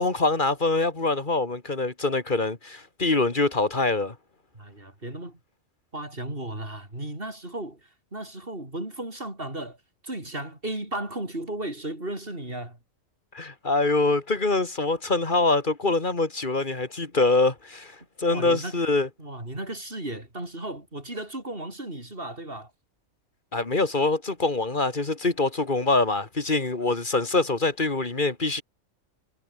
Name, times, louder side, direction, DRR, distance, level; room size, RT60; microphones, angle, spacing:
voice 1, 0.0-4.1 13.3-19.1 23.5-28.6, left 3 dB, 35° left, 2.4 m, -24 dB
voice 2, 4.5-5.4 5.9-9.8 10.0-12.8 18.3-18.8 19.2-22.7, right 1 dB, 40° right, 6.9 m, -35 dB
omnidirectional pair, 1.5 m